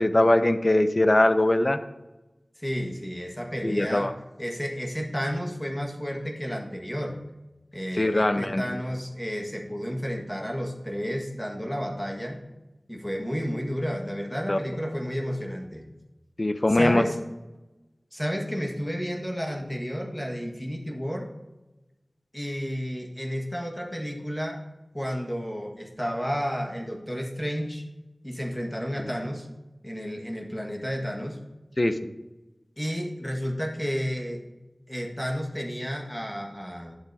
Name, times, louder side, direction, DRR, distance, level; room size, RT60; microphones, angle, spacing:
voice 1, 0.0-1.8 3.6-4.1 8.0-8.6 14.5-14.6 16.4-17.0 31.8-31.9, left 1 dB, 45° left, 10 dB, 0.6 m, -21 dB
voice 2, 2.6-4.1 4.4-7.2 7.7-12.4 12.9-15.8 16.7-17.2 18.1-21.3 22.3-24.6 24.9-27.8 28.2-29.5 29.8-31.4 32.8-34.4 34.9-37.0, equal, 10° left, 1 dB, 1.6 m, -31 dB
11.5 x 7.4 x 2.8 m, 1.1 s
wide cardioid pair, 45°, 0 cm